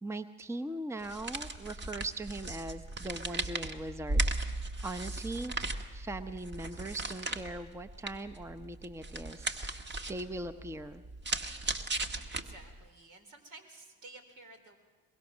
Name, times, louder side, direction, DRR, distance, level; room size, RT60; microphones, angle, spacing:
voice 1, 0.0-5.5 5.9-9.6 10.1-11.0, right 2 dB, 10° right, 10 dB, 0.7 m, -40 dB
sound 1, 1.0-12.9, right 2 dB, 35° right, 1.5 m, -37 dB
voice 2, 12.1-14.8, right 2 dB, 70° right, 5 dB, 3.6 m, -53 dB
23.0 x 21.0 x 6.3 m, 1.3 s
hypercardioid pair, 60°, 32 cm